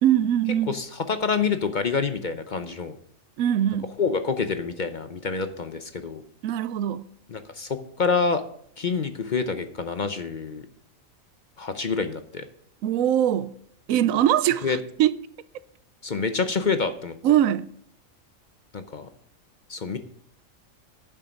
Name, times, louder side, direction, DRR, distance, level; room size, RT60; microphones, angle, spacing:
voice 1, 0.0-0.8 3.4-3.9 6.4-7.1 12.8-13.5 13.9-15.1 17.2-17.7, right 11 dB, 90° right, 1.0 m, -22 dB
voice 2, 0.7-2.9 4.0-6.2 7.3-8.4 8.8-10.7 11.6-12.5 14.6-14.8 16.0-17.2 18.7-19.1 19.7-20.0, left 5 dB, 45° left, 0.7 m, -27 dB
10.5 x 7.4 x 5.2 m
omnidirectional pair, 1.4 m